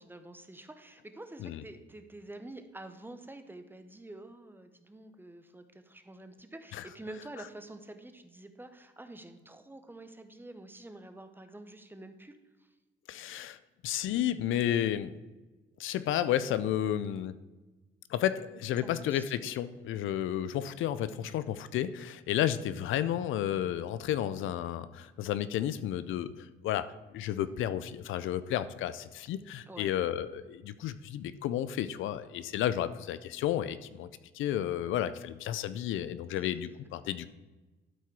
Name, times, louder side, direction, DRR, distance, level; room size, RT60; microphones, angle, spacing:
voice 1, 0.0-12.7 18.8-19.2 29.7-29.9 36.3-36.5, right 2 dB, 10° right, 8 dB, 0.9 m, -48 dB
voice 2, 13.1-13.6 13.8-15.2 15.8-17.4 18.1-34.1 34.3-37.3, left 11 dB, 80° left, 14 dB, 0.5 m, -32 dB
12.0 x 4.5 x 4.7 m, 1.2 s
cardioid pair, 90°, 20 cm